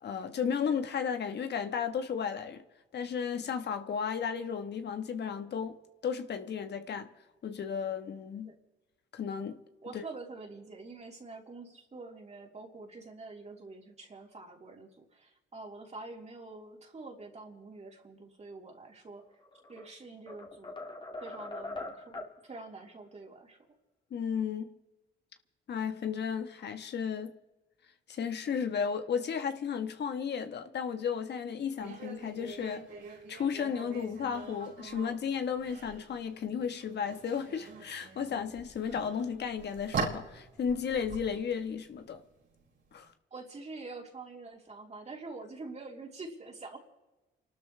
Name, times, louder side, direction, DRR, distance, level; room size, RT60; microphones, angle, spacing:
voice 1, 0.0-2.6 2.9-5.8 6.0-7.1 7.4-8.5 9.1-9.6 9.9-10.0 24.1-24.7 25.7-27.3 28.1-32.8 33.3-42.2 42.9-43.1, left 7 dB, 60° left, 1.4 m, -34 dB
voice 2, 9.8-19.3 19.7-20.9 21.2-23.6 43.3-46.8, right 3 dB, 35° right, 3.6 m, -46 dB
sound 1, 19.4-19.9 20.3-22.4, left 2 dB, 25° left, 2.3 m, -42 dB
sound 2, 31.8-43.1, right 4 dB, 70° right, 4.6 m, -43 dB
30.0 x 12.5 x 3.4 m
cardioid pair, 90°, 20 cm